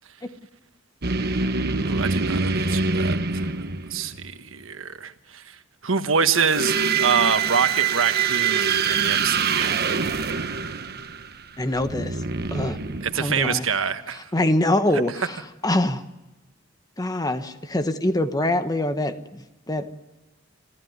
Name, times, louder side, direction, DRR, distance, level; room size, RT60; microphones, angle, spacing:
sound 1, 1.0-4.3 6.3-13.6, right 5 dB, 55° right, 1.2 m, -25 dB
voice 1, 1.8-3.5 3.9-5.6 5.8-6.7 7.0-9.8 13.0-14.3 14.9-15.0, right 6 dB, 90° right, 9 dB, 1.3 m, -25 dB
voice 2, 11.6-12.2 12.5-12.8 13.2-13.6 14.3-15.4 15.6-16.0 17.0-19.9, left 1 dB, 20° left, 9 dB, 1.2 m, -24 dB
26.5 x 15.5 x 9.5 m, 1.0 s
head